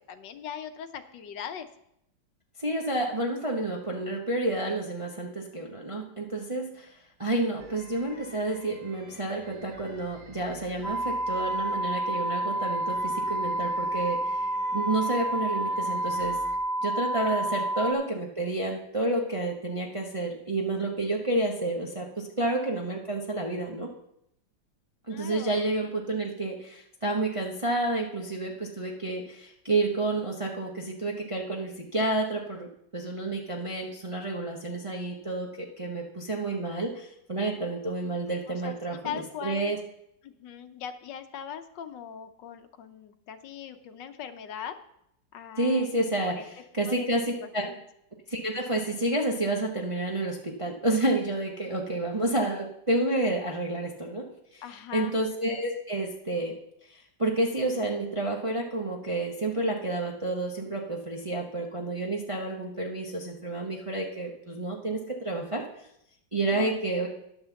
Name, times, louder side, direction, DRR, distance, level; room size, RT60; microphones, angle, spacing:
voice 1, 0.1-1.7 17.2-17.6 25.1-25.6 38.5-38.8 39.0-39.8 40.2-44.8 45.3-45.9 46.2-46.5 46.9-47.8 54.6-55.1 66.5-66.8, left 9 dB, 75° left, 9 dB, 1.4 m, -40 dB
voice 2, 2.6-14.5 14.7-16.4 16.8-23.9 25.1-39.8 45.6-47.7 48.3-54.6 54.9-56.6 56.9-65.6 66.3-67.1, right 2 dB, 25° right, 0 dB, 0.6 m, -30 dB
sound 1, 7.6-16.6, right 1 dB, 60° right, 2.1 m, -49 dB
sound 2, 10.8-17.9, right 1 dB, 40° left, 1.3 m, -29 dB
10.5 x 5.7 x 6.9 m, 0.77 s
omnidirectional pair, 2.0 m